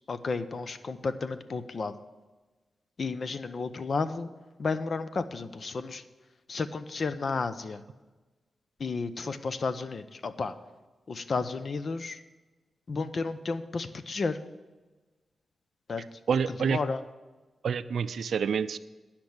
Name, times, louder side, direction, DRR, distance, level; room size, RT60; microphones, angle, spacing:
voice 1, 0.1-2.0 3.0-4.3 4.6-6.0 6.5-7.8 8.8-10.6 11.1-12.2 12.9-14.4 15.9-16.0 16.6-17.0, left 4 dB, 55° left, 12 dB, 0.6 m, -32 dB
voice 2, 16.3-16.8 17.6-18.8, right 6 dB, 75° right, 14 dB, 0.4 m, -27 dB
10.5 x 5.9 x 7.9 m, 1.2 s
cardioid pair, 70°, 0 cm